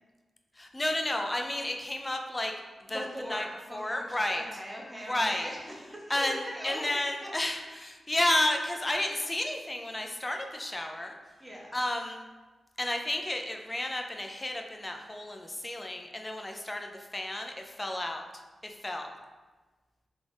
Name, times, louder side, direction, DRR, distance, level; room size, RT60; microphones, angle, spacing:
voice 1, 0.6-2.5 2.9-3.5 3.7-4.4 5.1-5.5 6.1-11.2 11.7-12.2 12.8-18.2 18.6-19.1, left 1 dB, 15° left, 3 dB, 0.4 m, -32 dB
voice 2, 2.9-7.3 11.4-11.8, equal, 15° right, -3 dB, 1.0 m, -41 dB
3.7 x 3.4 x 3.8 m, 1.3 s
wide cardioid pair, 115°, 0 cm